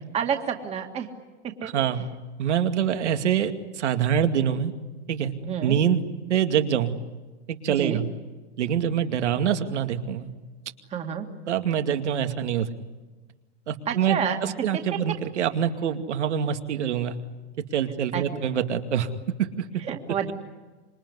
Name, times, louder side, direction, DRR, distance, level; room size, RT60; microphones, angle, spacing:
voice 1, 0.1-1.1 1.4-1.7 5.4-5.8 7.8-8.0 10.9-11.3 13.9-14.4 18.1-18.4 19.8-20.3, right 8 dB, 20° right, 5 dB, 1.9 m, -29 dB
voice 2, 1.6-2.0 2.4-4.7 5.1-5.3 5.6-6.0 6.3-6.9 7.5-8.1 8.6-10.3 11.5-12.7 13.7-17.2 17.7-19.1 19.4-19.6, right 8 dB, 85° right, 7 dB, 2.4 m, -25 dB
26.5 x 22.5 x 9.7 m, 1.3 s
supercardioid pair, 150°, 34 cm